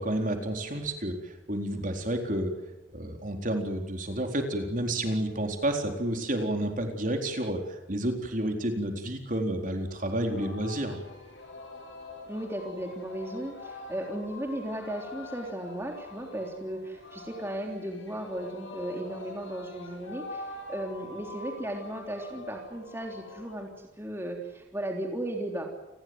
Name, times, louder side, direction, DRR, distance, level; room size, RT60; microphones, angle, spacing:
voice 1, 0.0-2.5 2.9-11.0, right 1 dB, 40° right, 4 dB, 4.2 m, -30 dB
Singing, 9.9-23.6, left 2 dB, 75° left, 7.9 m, -45 dB
voice 2, 12.3-23.7 24.0-25.7, right 1 dB, 10° right, 1 dB, 3.4 m, -36 dB
29.5 x 20.5 x 8.0 m, 0.99 s
head